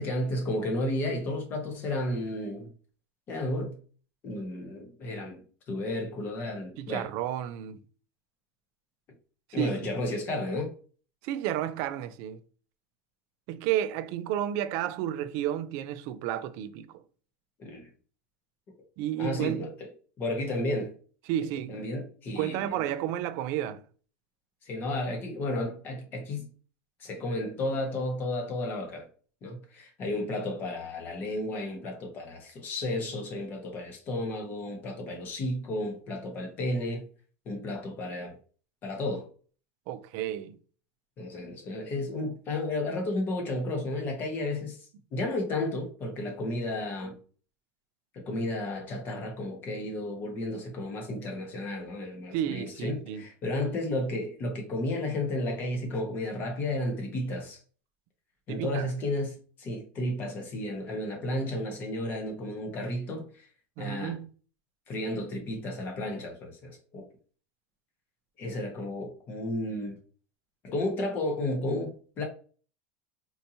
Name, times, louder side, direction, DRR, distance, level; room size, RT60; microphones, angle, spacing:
voice 1, 0.0-2.7 3.3-3.8 4.2-7.1 9.5-10.7 17.6-17.9 19.2-19.7 20.2-20.9 21.7-22.8 24.6-26.5 27.0-29.1 29.4-37.0 37.4-38.4 38.8-39.3 41.2-44.8 45.1-47.2 48.1-57.6 58.5-63.5 63.8-64.2 64.9-67.0 68.4-70.0 70.6-72.2, left 1 dB, 30° left, 1.1 m, -32 dB
voice 2, 6.8-7.8 9.6-9.7 11.2-12.4 13.5-16.9 19.0-19.7 21.3-21.9 22.4-23.8 39.9-40.6 52.3-53.2 58.5-58.9 63.8-64.3, right 11 dB, 50° right, 0.4 m, -31 dB
4.4 x 2.8 x 2.8 m
supercardioid pair, 165°, 7 cm